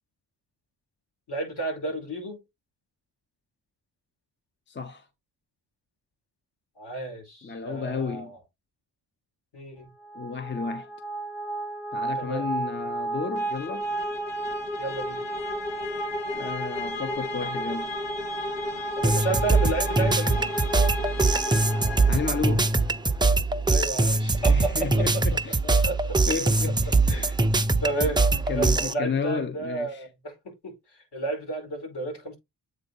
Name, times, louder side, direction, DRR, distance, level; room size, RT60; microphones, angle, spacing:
voice 1, 1.3-2.4 6.8-8.4 9.5-9.9 12.1-12.5 14.8-15.2 19.0-20.5 23.6-25.2 25.6-26.2 27.1-27.4 27.8-32.4, right 2 dB, 65° left, 4.9 m, -32 dB
voice 2, 4.7-5.1 7.4-8.3 10.1-10.9 11.9-13.9 16.3-17.9 22.1-22.7 24.4-25.9 26.3-27.0 28.5-30.1, left 5 dB, 25° left, 0.6 m, -32 dB
sound 1, 10.0-22.8, equal, 85° left, 2.1 m, -32 dB
sound 2, 19.0-28.9, right 3 dB, 10° right, 0.4 m, -23 dB
8.0 x 4.2 x 4.0 m
wide cardioid pair, 175°, 43 cm